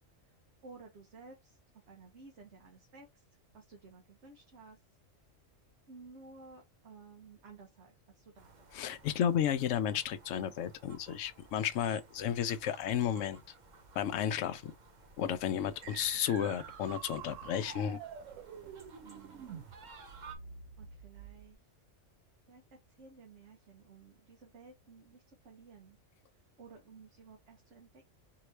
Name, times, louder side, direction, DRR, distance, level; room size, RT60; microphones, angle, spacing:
voice 1, 0.6-3.2 3.5-4.8 5.9-8.8 19.0-19.6 20.8-21.6 22.5-22.6 23.0-26.0 26.3-28.0, right 4 dB, 65° right, 1.3 m, -55 dB
sound 1, 8.4-20.4, right 4 dB, 45° right, 0.7 m, -57 dB
voice 2, 8.7-13.4 13.9-14.7 15.2-18.0, left 9 dB, 75° left, 0.9 m, -33 dB
sound 2, 15.8-21.5, right 7 dB, 80° right, 1.0 m, -48 dB
3.8 x 2.9 x 3.1 m
omnidirectional pair, 1.3 m